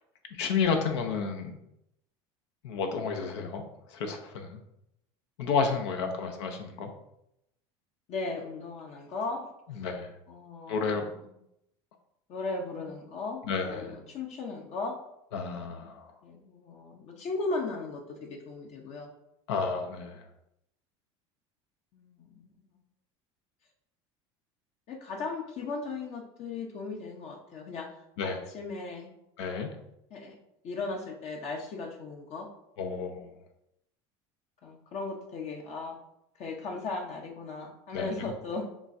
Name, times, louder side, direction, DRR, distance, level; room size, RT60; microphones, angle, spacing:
voice 1, 0.4-1.6 2.6-3.6 3.9-4.6 5.4-6.9 9.7-10.1 10.7-11.0 12.8-12.9 13.4-14.0 15.3-16.1 19.5-20.2 28.2-28.4 29.4-29.7 32.8-33.3 37.9-38.3, left 5 dB, 80° left, 5 dB, 0.7 m, -31 dB
voice 2, 8.1-9.5 10.3-11.3 12.3-14.9 16.2-19.1 21.9-22.5 24.9-27.9 28.2-29.1 30.1-30.3 30.6-32.5 34.6-36.0 36.4-38.7, left 3 dB, 50° left, 1 dB, 0.8 m, -37 dB
7.0 x 2.4 x 2.7 m, 0.81 s
supercardioid pair, 95°, 14 cm